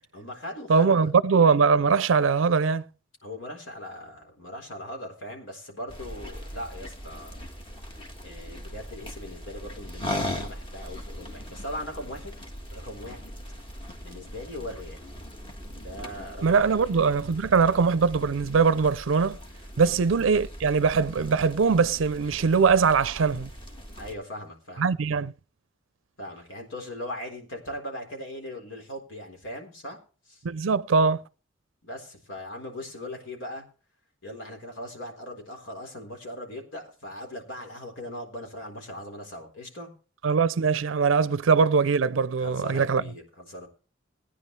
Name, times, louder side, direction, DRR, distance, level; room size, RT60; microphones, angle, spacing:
voice 1, 0.1-1.1 3.2-7.4 8.2-12.4 12.7-13.3 14.0-15.0 15.7-17.2 19.8-20.0 24.0-24.9 26.2-30.0 30.3-30.4 31.8-33.7 34.2-39.9 42.4-43.7, left 1 dB, 80° left, 4.0 m, -39 dB
voice 2, 0.7-2.8 16.4-19.4 19.8-23.5 24.8-25.3 30.4-31.2 40.2-43.0, right 5 dB, 90° right, 0.5 m, -22 dB
sound 1, 5.9-24.1, left 1 dB, 25° left, 1.6 m, -40 dB
19.0 x 9.7 x 3.2 m
head